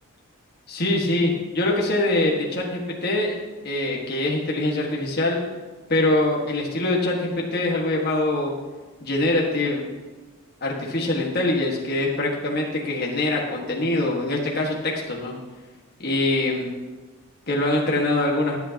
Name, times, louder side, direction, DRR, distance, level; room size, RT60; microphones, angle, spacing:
voice 1, 0.7-5.4 5.9-8.5 9.0-9.8 10.6-15.3 16.0-16.7 17.5-18.6, left 2 dB, 45° left, -2 dB, 1.6 m, -23 dB
19.5 x 8.2 x 2.9 m, 1.3 s
head